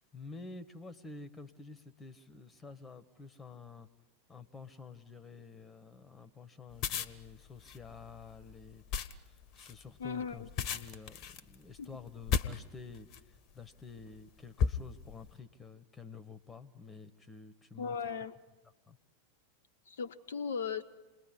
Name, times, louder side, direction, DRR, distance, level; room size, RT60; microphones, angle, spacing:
voice 1, 0.1-3.9 4.3-18.0 18.9-19.0, left 4 dB, 15° left, 16 dB, 1.6 m, -50 dB
sound 1, 6.7-13.4 14.0-14.2 14.6-15.3, left 7 dB, 40° left, 1.3 m, -35 dB
voice 2, 10.0-10.5 11.8-11.9 17.8-18.3 19.9-20.8, left 6 dB, 65° left, 10 dB, 1.0 m, -37 dB
28.5 x 21.0 x 9.9 m, 1.2 s
figure-of-eight pair, 90°, 0 cm